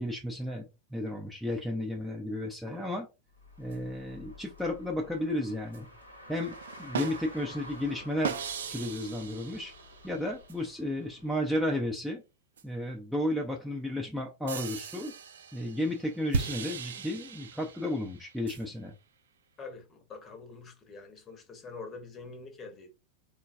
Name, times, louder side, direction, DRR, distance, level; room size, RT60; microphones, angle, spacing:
voice 1, 0.0-3.1 3.6-5.9 6.3-8.4 8.6-9.7 10.0-12.2 12.6-15.1 15.5-18.9, left 1 dB, ahead, 0.5 m, -33 dB
Car, 3.3-11.9, left 1 dB, 85° left, 0.9 m, -50 dB
sound 1, 3.7-3.8 5.7-5.8 6.4-7.6 8.2-10.5 12.6-12.7 14.5-18.6, right 6 dB, 65° right, 0.3 m, -38 dB
voice 2, 19.6-22.9, left 4 dB, 25° left, 0.8 m, -45 dB
3.7 x 2.2 x 2.5 m
figure-of-eight pair, 90°, 0 cm